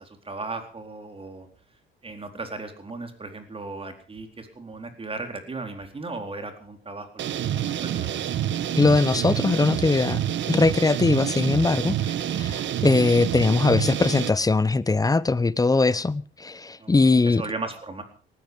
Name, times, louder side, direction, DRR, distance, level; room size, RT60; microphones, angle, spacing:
voice 1, 0.0-1.5 2.0-8.3 16.8-18.0, right 3 dB, 30° right, 4.1 m, -36 dB
sound 1, 7.2-14.3, right 10 dB, 70° right, 1.2 m, -27 dB
voice 2, 8.8-10.2 10.5-17.4, left 3 dB, 20° left, 0.8 m, -21 dB
19.0 x 14.5 x 5.3 m
cardioid pair, 90°, 20 cm